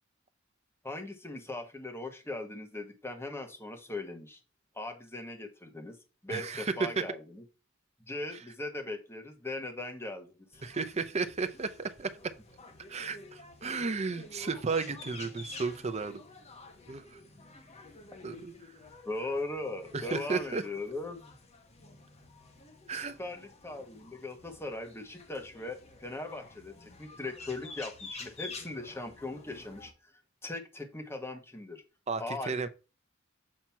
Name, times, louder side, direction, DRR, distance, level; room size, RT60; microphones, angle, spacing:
voice 1, 0.8-4.4 4.7-6.0 6.2-7.4 8.1-10.6 19.0-21.4 22.9-29.9 30.4-31.8 32.2-32.5, left 2 dB, 10° left, 1.2 m, -39 dB
voice 2, 6.3-7.0 8.3-8.4 10.6-12.2 12.9-16.2 16.9-17.2 18.2-18.7 19.9-20.6 22.9-23.2 32.1-32.7, right 4 dB, 35° right, 0.7 m, -33 dB
sound 1, 10.5-29.9, left 3 dB, 35° left, 1.2 m, -50 dB
7.4 x 2.9 x 5.7 m
head